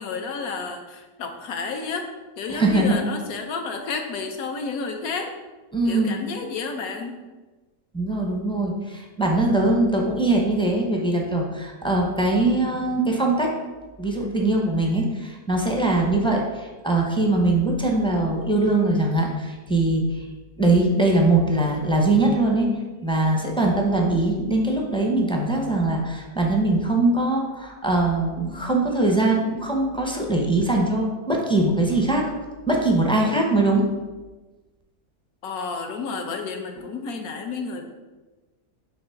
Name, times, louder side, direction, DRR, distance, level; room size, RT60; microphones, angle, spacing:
voice 1, 0.0-2.1 2.4-5.3 5.9-7.2 35.4-37.8, left 4 dB, 70° left, 4 dB, 1.3 m, -31 dB
voice 2, 2.5-3.0 5.7-6.2 7.9-13.5 14.0-20.2 20.6-22.7 23.0-32.3 32.7-33.9, right 2 dB, 5° left, -1 dB, 0.4 m, -22 dB
6.5 x 3.2 x 5.7 m, 1.2 s
omnidirectional pair, 1.7 m